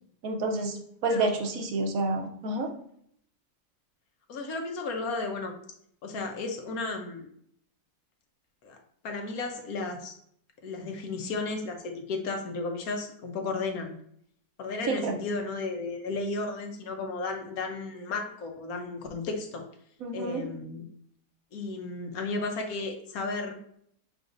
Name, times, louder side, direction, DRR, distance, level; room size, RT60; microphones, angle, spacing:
voice 1, 0.2-2.7 14.9-15.2 20.0-20.5, right 2 dB, 65° right, 3 dB, 1.1 m, -29 dB
voice 2, 4.3-5.5 6.0-7.3 8.6-8.8 9.0-10.1 10.6-14.0 14.6-19.6 20.1-20.8 21.5-23.6, left 3 dB, 70° left, 4 dB, 1.2 m, -34 dB
5.1 x 3.9 x 2.5 m, 0.66 s
omnidirectional pair, 1.6 m